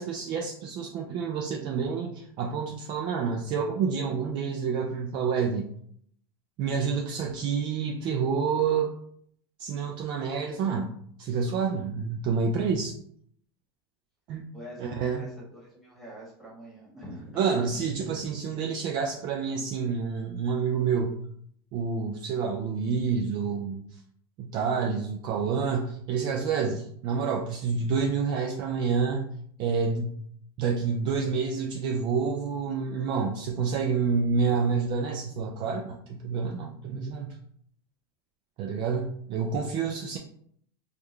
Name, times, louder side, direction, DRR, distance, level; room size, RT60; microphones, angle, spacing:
voice 1, 0.0-5.7 6.6-8.9 9.6-10.9 11.2-12.9 14.3-14.4 14.8-15.3 17.4-21.2 21.7-24.0 24.4-29.3 29.6-30.2 30.6-37.3 38.6-40.2, right 5 dB, 40° right, 1 dB, 0.4 m, -28 dB
voice 2, 14.5-17.4, equal, ahead, -6 dB, 1.4 m, -45 dB
3.6 x 2.3 x 3.2 m, 0.65 s
supercardioid pair, 145°, 13 cm